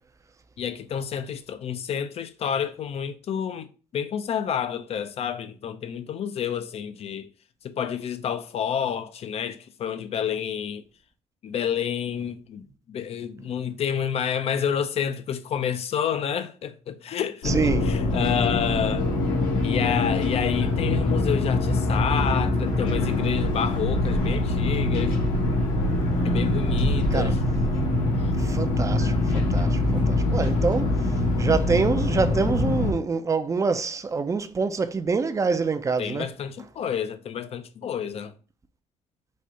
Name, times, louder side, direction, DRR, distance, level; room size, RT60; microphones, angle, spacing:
voice 1, 0.6-7.3 7.6-10.8 11.4-19.1 19.6-25.2 26.2-27.4 28.2-28.3 36.0-38.3, left 8 dB, 50° left, 0.6 m, -29 dB
sound 1, 17.4-32.9, left 2 dB, 75° left, 1.7 m, -24 dB
voice 2, 17.4-17.9 27.1-27.3 28.4-31.0 31.4-36.3, right 4 dB, 25° right, 0.5 m, -26 dB
4.2 x 2.5 x 4.7 m
cardioid pair, 95°, 14 cm